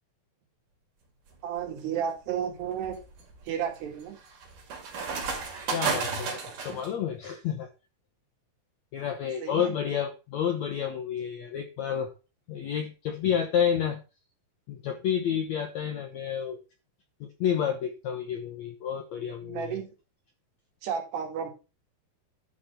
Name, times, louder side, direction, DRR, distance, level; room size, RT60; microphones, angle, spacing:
sound 1, 1.3-1.7 2.3-6.9, right 5 dB, 55° right, 3.9 m, -33 dB
voice 1, 1.4-3.0 3.5-4.2 9.4-9.7 19.4-19.9 20.8-21.5, right 8 dB, 80° right, 2 dB, 4.1 m, -32 dB
voice 2, 5.7-7.7 8.9-12.1 12.5-14.0 14.7-16.6 17.2-19.8, left 8 dB, 75° left, 5 dB, 1.6 m, -30 dB
12.0 x 4.5 x 6.7 m, 0.31 s
omnidirectional pair, 4.7 m